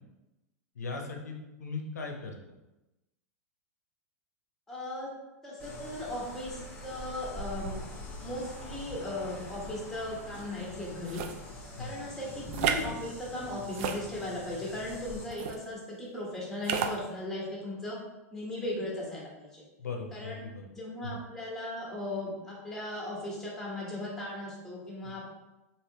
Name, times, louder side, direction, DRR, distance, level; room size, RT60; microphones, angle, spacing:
voice 1, 0.8-2.4 11.8-11.9 19.8-20.7 21.0-21.2 25.0-25.1, left 4 dB, 90° left, 2 dB, 0.5 m, -38 dB
voice 2, 4.7-5.1 5.4-7.8 8.2-11.2 11.8-18.0 18.3-19.6 20.1-20.4 20.7-25.3, left 1 dB, 5° left, -4 dB, 1.1 m, -37 dB
sound 1, 5.6-15.3, left 1 dB, 25° left, 1.0 m, -44 dB
sound 2, 11.1-11.4 12.5-12.9 13.7-14.5 15.3-15.6 16.6-17.0, right 7 dB, 50° right, 0.3 m, -31 dB
3.3 x 2.7 x 2.8 m, 1.0 s
hypercardioid pair, 110°, 9 cm